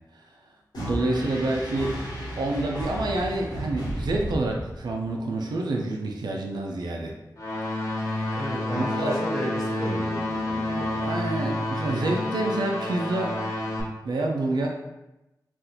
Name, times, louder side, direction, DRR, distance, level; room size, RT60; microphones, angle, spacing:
sound 1, 0.7-5.0, equal, 80° left, 1.0 m, -34 dB
voice 1, 0.8-2.0 2.4-7.1 7.7-8.5 8.9-9.2 11.0-13.3 14.0-14.7, right 2 dB, 85° right, 0 dB, 0.5 m, -28 dB
sound 2, 7.4-13.8, left 1 dB, 50° left, 0.7 m, -29 dB
voice 2, 8.3-11.1, equal, 5° left, -7 dB, 1.1 m, -33 dB
2.8 x 2.5 x 3.8 m, 0.97 s
wide cardioid pair, 110°, 7 cm